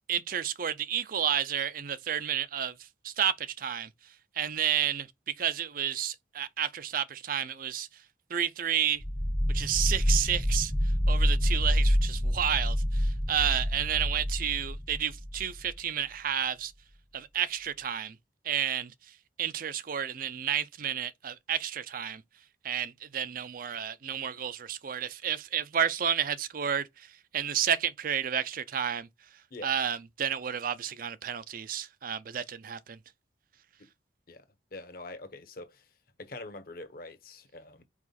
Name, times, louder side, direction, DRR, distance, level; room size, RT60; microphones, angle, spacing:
voice 1, 0.1-2.7 3.0-3.9 4.4-5.1 5.4-7.9 8.3-9.0 9.5-10.7 11.1-12.8 13.3-16.7 17.1-18.1 18.5-18.9 19.4-22.2 22.6-26.8 27.3-29.1 29.6-33.0, right 9 dB, 50° right, 0.5 m, -31 dB
sound 1, 9.0-15.7, equal, 10° left, 0.8 m, -27 dB
voice 2, 34.7-35.9 36.2-37.8, left 2 dB, 55° left, 1.1 m, -44 dB
4.8 x 4.7 x 4.1 m
head